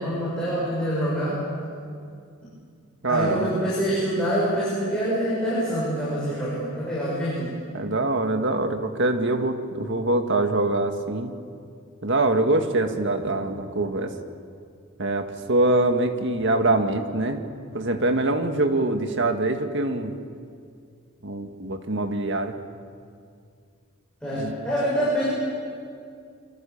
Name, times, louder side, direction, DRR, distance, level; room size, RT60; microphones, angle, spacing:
voice 1, 0.0-1.4 3.1-7.6 24.2-25.3, equal, 5° left, -9 dB, 7.6 m, -25 dB
voice 2, 3.0-3.6 7.7-11.3 12.0-14.1 15.0-17.4 17.7-20.2 21.2-22.6 24.3-24.5, right 2 dB, 55° right, 6 dB, 1.9 m, -24 dB
28.0 x 25.0 x 7.2 m, 2.3 s
head